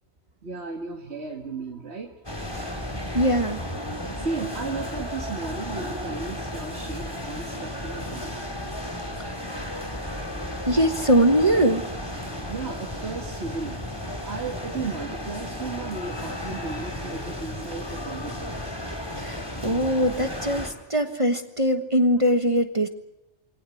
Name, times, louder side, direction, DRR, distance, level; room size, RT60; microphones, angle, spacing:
voice 1, 0.4-2.2 4.2-8.3 12.5-13.8 14.2-18.6, right 4 dB, 65° right, 2 dB, 2.1 m, -35 dB
sound 1, 2.2-20.7, left 1 dB, 20° left, 3.4 m, -34 dB
voice 2, 3.1-3.6 10.6-11.8 19.2-22.9, equal, 25° right, 7 dB, 1.5 m, -22 dB
24.5 x 18.0 x 9.2 m, 0.87 s
omnidirectional pair, 1.2 m